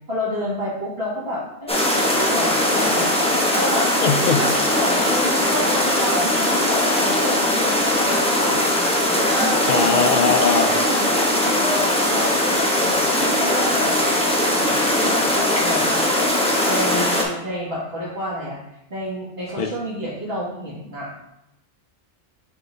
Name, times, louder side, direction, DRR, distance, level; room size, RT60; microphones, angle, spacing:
voice 1, 0.1-1.8 2.1-3.1 3.5-3.9 4.4-8.7 9.3-10.0 10.4-11.1 11.4-14.0 14.3-16.0 16.7-18.6 18.9-21.1, equal, 50° right, -7 dB, 2.4 m, -29 dB
sound 1, 1.7-17.2, left 1 dB, 5° left, 0.8 m, -20 dB
voice 2, 4.0-4.5 9.7-10.8 19.6-19.7, left 6 dB, 70° left, 6 dB, 0.4 m, -20 dB
6.1 x 5.6 x 2.7 m, 0.86 s
omnidirectional pair, 1.3 m